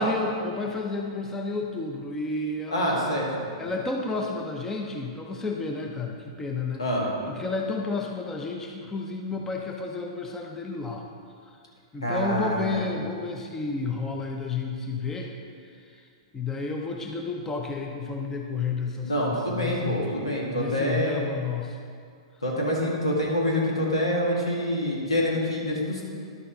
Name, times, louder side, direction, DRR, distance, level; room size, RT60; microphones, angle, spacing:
voice 1, 0.0-3.2 3.6-6.9 7.3-11.1 11.9-15.3 15.6-16.1 16.3-20.0 20.5-21.8, left 3 dB, 15° left, 1 dB, 0.7 m, -31 dB
voice 2, 2.7-3.5 6.8-7.1 12.0-12.8 19.0-21.2 22.4-26.0, equal, 80° left, -3 dB, 2.1 m, -26 dB
11.0 x 6.8 x 3.9 m, 2.3 s
figure-of-eight pair, 105°, 3 cm